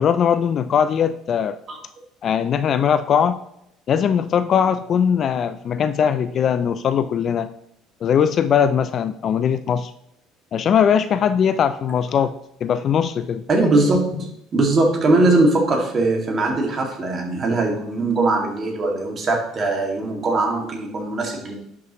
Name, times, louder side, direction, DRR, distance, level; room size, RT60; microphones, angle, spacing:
voice 1, 0.0-1.6 2.2-3.4 3.9-7.5 8.0-9.9 10.5-13.4, left 8 dB, 40° left, 12 dB, 0.4 m, -20 dB
voice 2, 13.5-14.3 14.5-21.5, right 2 dB, 30° right, 1 dB, 2.1 m, -20 dB
10.5 x 6.1 x 3.0 m, 0.76 s
cardioid pair, 140°, 0 cm